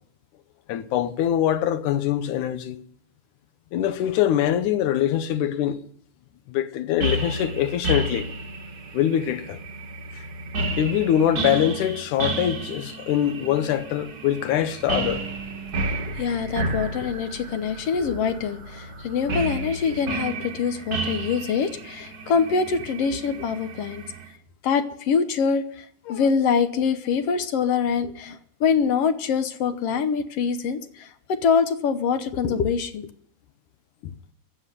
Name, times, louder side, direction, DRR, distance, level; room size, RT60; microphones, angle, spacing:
voice 1, 0.7-2.8 3.7-5.8 6.5-8.3 8.9-9.6 10.1-10.2 10.8-15.2, left 11 dB, 85° left, 2.4 m, -23 dB
sound 1, 7.0-24.3, right 2 dB, 45° right, 1.3 m, -32 dB
voice 2, 15.9-24.0 24.6-33.1, left 6 dB, 65° left, 1.8 m, -24 dB
15.0 x 8.0 x 9.9 m
omnidirectional pair, 3.5 m